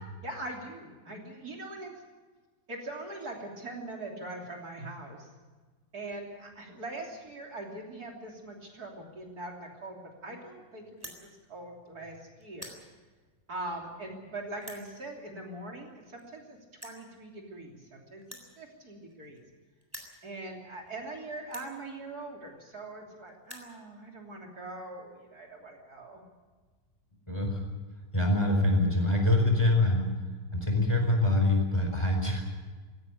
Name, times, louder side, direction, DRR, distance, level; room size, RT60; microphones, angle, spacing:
voice 1, 0.2-2.0 2.7-5.3 5.9-12.8 13.5-19.4 20.2-26.2, right 2 dB, 60° right, 1 dB, 3.6 m, -42 dB
sound 1, 11.0-11.2 11.9-12.1 12.4-12.8 13.6-13.7 14.6-14.8 15.9-16.2 16.8-17.0 18.2-19.5 19.8-20.2 20.9-21.0 21.5-21.7 22.6-22.7 22.9-23.0 23.3-23.7, equal, 10° right, 3.7 m, -46 dB
voice 2, 27.3-27.6 28.1-30.1 30.5-32.4, left 2 dB, 15° left, 2 dB, 4.6 m, -25 dB
17.5 x 17.5 x 9.7 m, 1.4 s
omnidirectional pair, 1.9 m